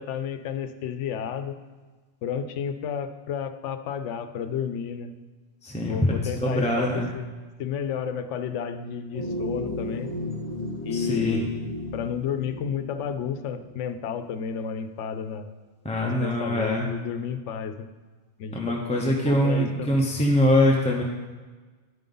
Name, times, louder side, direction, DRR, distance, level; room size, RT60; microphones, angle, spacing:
voice 1, 0.0-1.6 2.2-5.1 5.9-7.3 7.6-10.1 10.8-11.5 11.9-15.5 16.0-17.9 18.4-20.0, left 7 dB, 85° left, 9 dB, 0.9 m, -32 dB
voice 2, 5.6-7.1 10.9-11.4 15.8-16.9 18.5-21.0, left 1 dB, 10° left, -1 dB, 0.5 m, -23 dB
sound 1, 9.1-13.8, left 1 dB, 85° right, 2.1 m, -34 dB
9.5 x 5.3 x 3.7 m, 1.3 s
omnidirectional pair, 1.2 m